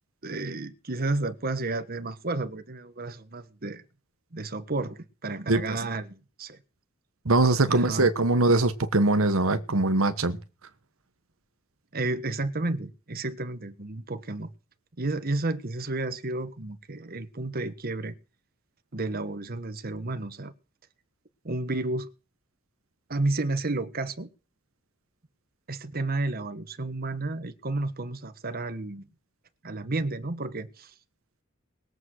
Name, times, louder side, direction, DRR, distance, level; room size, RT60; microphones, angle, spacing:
voice 1, 0.2-3.8 4.3-6.6 7.7-8.1 11.9-14.5 15.0-18.1 18.9-20.5 21.4-22.1 23.1-24.3 25.7-29.1 29.6-30.9, right 2 dB, 45° right, 1.3 m, -31 dB
voice 2, 7.2-10.4, right 2 dB, 75° right, 1.3 m, -22 dB
20.5 x 7.9 x 6.4 m
head